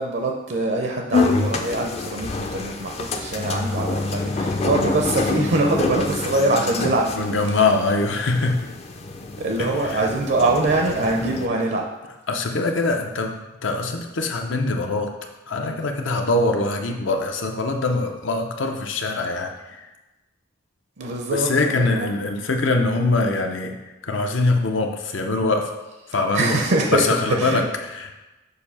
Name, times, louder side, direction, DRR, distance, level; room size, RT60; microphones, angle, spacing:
voice 1, 0.0-7.4 9.4-11.9 21.0-22.1 26.3-27.6, right 2 dB, 60° right, 1 dB, 0.6 m, -23 dB
sound 1, 1.1-11.5, left 3 dB, 35° left, 0.4 m, -27 dB
voice 2, 7.2-8.6 9.6-10.1 12.3-15.1 15.5-19.9 21.3-25.7 26.1-26.6 26.9-28.1, left 3 dB, 75° left, 4 dB, 0.7 m, -23 dB
6.6 x 2.6 x 5.5 m, 1.1 s
head